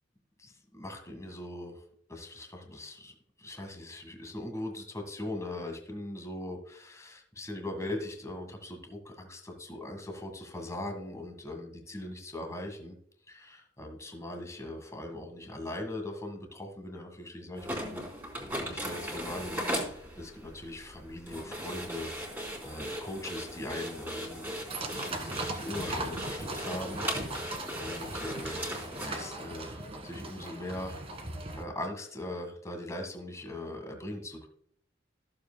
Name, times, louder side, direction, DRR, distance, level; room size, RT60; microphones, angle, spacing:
voice 1, 0.4-1.8 2.1-13.0 13.3-18.0 18.6-24.6 24.9-31.0 31.5-34.5, left 1 dB, 15° left, 4 dB, 1.8 m, -40 dB
sound 1, 17.6-29.1, equal, 10° right, 3.4 m, -38 dB
sound 2, 24.7-31.6, right 2 dB, 35° right, 1.6 m, -39 dB
14.5 x 7.5 x 2.3 m, 0.64 s
head